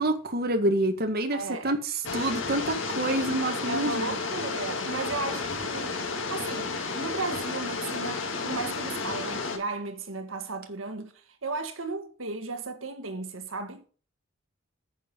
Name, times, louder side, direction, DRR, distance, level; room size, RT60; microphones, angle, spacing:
voice 1, 0.0-4.2, right 1 dB, 50° right, 1.7 m, -27 dB
voice 2, 1.3-1.7 3.7-6.0 6.3-13.9, right 3 dB, 75° right, 1.7 m, -35 dB
sound 1, 2.0-9.6, left 4 dB, 65° left, 2.2 m, -32 dB
10.0 x 7.1 x 5.4 m
head